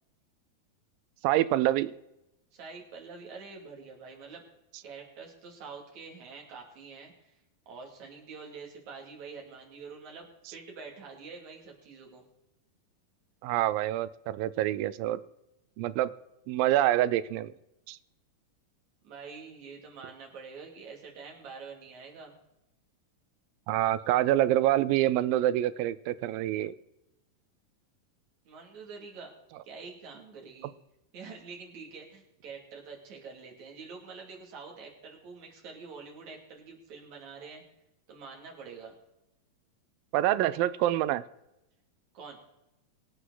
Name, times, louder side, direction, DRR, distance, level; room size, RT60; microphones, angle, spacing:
voice 1, 1.2-1.9 13.4-15.2 15.8-16.1 16.5-17.5 17.9-18.0 23.7-26.7 40.1-41.2, right 14 dB, 85° right, 16 dB, 2.4 m, -26 dB
voice 2, 2.5-4.4 4.8-7.4 7.7-12.3 19.0-22.3 28.5-29.3 29.6-30.7 31.1-37.6 38.1-39.0 42.1-42.4, right 5 dB, 55° right, 0 dB, 3.8 m, -46 dB
24.0 x 8.1 x 4.0 m, 0.89 s
omnidirectional pair, 4.0 m